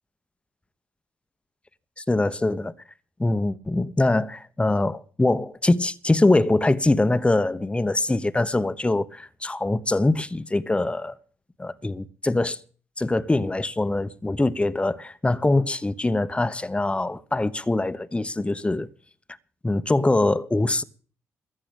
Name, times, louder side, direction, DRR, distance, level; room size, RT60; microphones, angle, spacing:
voice 1, 2.1-2.7 3.2-11.2 11.6-12.6 13.0-18.9 19.6-20.8, left 2 dB, 15° left, 1.1 m, -23 dB
14.0 x 7.6 x 8.8 m
hypercardioid pair, 45°, 6 cm